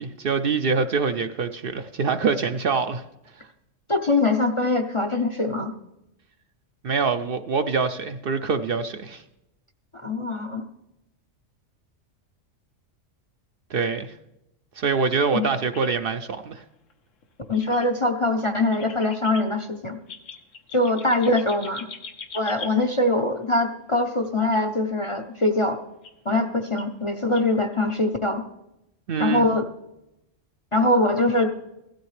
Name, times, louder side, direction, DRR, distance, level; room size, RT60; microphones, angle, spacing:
voice 1, 0.0-3.0 6.8-9.2 13.7-14.1 14.8-16.6 29.1-29.5, right 5 dB, 60° right, 0.7 m, -25 dB
voice 2, 3.9-5.7 9.9-10.6 15.3-15.5 17.5-20.0 20.7-21.9 22.3-25.8 26.2-28.4 29.2-29.7 30.7-31.5, left 2 dB, 35° left, 0.5 m, -23 dB
sound 1, 15.4-16.6 16.9-17.0 17.2-17.3 17.5-18.1 18.6-19.5 20.0-23.0 24.2-24.3 25.6-25.7 26.0-26.1 26.8-27.1 27.3-27.5 27.9-28.0, left 5 dB, 90° left, 1.4 m, -41 dB
16.0 x 13.0 x 3.2 m
omnidirectional pair, 1.3 m